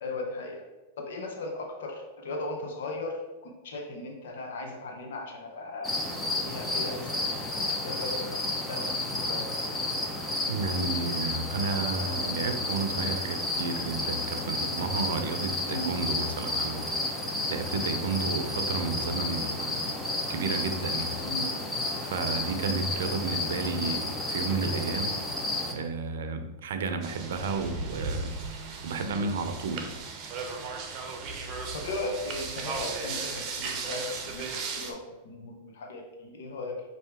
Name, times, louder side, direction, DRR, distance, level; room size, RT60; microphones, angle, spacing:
voice 1, 0.0-0.6 1.0-6.0 6.5-7.2 7.6-9.5 15.6-16.0 18.2-18.4 21.2-21.5 22.7-22.8 31.7-36.8, left 2 dB, 75° left, 1 dB, 0.8 m, -37 dB
sound 1, 5.8-25.7, left 2 dB, 10° left, 0.7 m, -31 dB
voice 2, 10.5-17.1 17.5-19.7 20.3-21.2 22.0-25.2 25.7-28.3 28.8-30.0, right 4 dB, 80° right, 7 dB, 0.5 m, -32 dB
sound 2, 27.0-34.9, right 4 dB, 40° right, 0.7 m, -36 dB
5.4 x 2.6 x 3.4 m, 1.1 s
hypercardioid pair, 115°, 0 cm